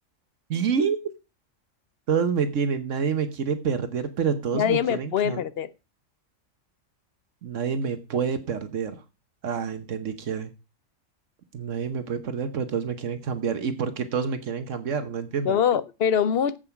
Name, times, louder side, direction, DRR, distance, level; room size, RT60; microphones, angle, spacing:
voice 1, 0.5-1.0 2.1-5.4 7.4-9.0 9.4-10.5 11.5-15.6, right 6 dB, 75° right, 1.3 m, -27 dB
voice 2, 4.5-5.7 15.4-16.6, left 8 dB, 55° left, 0.9 m, -23 dB
7.9 x 7.4 x 5.8 m
omnidirectional pair, 1.3 m